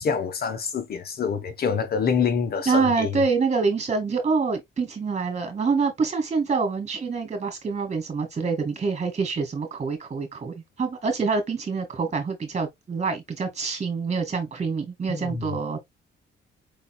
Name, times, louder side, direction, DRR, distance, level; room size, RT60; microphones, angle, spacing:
voice 1, 0.0-3.2 15.1-15.5, left 6 dB, 50° left, 1.0 m, -26 dB
voice 2, 2.7-15.8, right 4 dB, 35° right, 2.2 m, -26 dB
5.3 x 4.0 x 2.3 m
cardioid pair, 90°, 20 cm